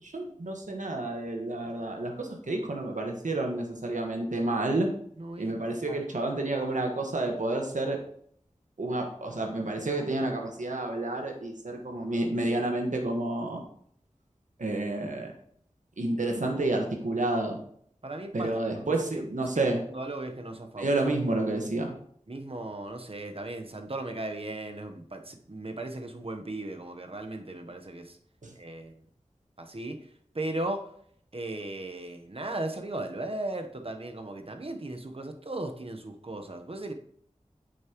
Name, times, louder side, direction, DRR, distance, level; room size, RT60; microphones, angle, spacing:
voice 1, 0.0-4.9 5.4-8.0 8.8-13.6 14.6-15.3 16.0-17.6 18.3-19.8 20.8-21.9 28.4-28.5, right 2 dB, 80° right, 2 dB, 1.5 m, -30 dB
voice 2, 5.2-5.5 5.9-6.0 18.0-18.5 18.8-19.3 19.5-20.9 22.3-28.2 28.6-28.9 29.6-30.0 30.3-30.9 31.3-36.9, right 2 dB, 50° right, 5 dB, 1.0 m, -37 dB
8.6 x 6.9 x 3.0 m, 0.64 s
wide cardioid pair, 45°, 13 cm